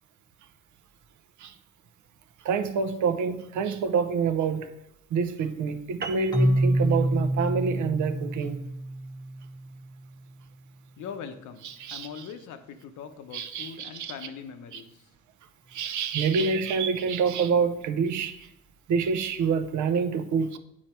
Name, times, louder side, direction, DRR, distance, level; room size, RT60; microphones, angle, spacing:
voice 1, 2.4-4.7 5.1-8.6 11.6-12.3 13.3-14.1 14.7-14.8 15.7-18.5 18.9-20.6, right 5 dB, 75° right, 0.7 m, -27 dB
sound 1, 6.0-10.8, right 4 dB, 35° right, 0.7 m, -43 dB
Keyboard (musical), 6.3-10.0, right 1 dB, 15° left, 0.8 m, -27 dB
voice 2, 11.0-15.0, left 7 dB, 80° left, 0.9 m, -41 dB
8.6 x 4.5 x 4.4 m
cardioid pair, 90°, 30 cm